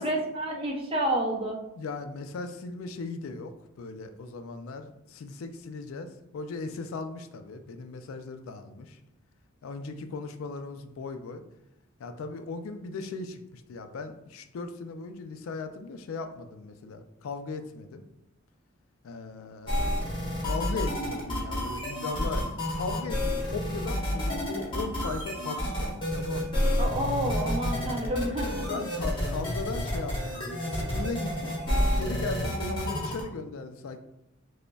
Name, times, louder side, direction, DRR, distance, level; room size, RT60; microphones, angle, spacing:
voice 1, 0.0-1.6 26.8-28.7, right 1 dB, 25° right, -1 dB, 0.6 m, -29 dB
voice 2, 1.7-9.0 9.6-11.4 12.0-18.0 19.0-19.8 20.4-22.5 22.7-26.6 28.7-31.5 32.0-34.0, left 3 dB, 80° left, 8 dB, 0.4 m, -37 dB
sound 1, 19.7-33.2, left 1 dB, 25° left, 0.9 m, -29 dB
5.0 x 2.1 x 2.2 m, 0.85 s
head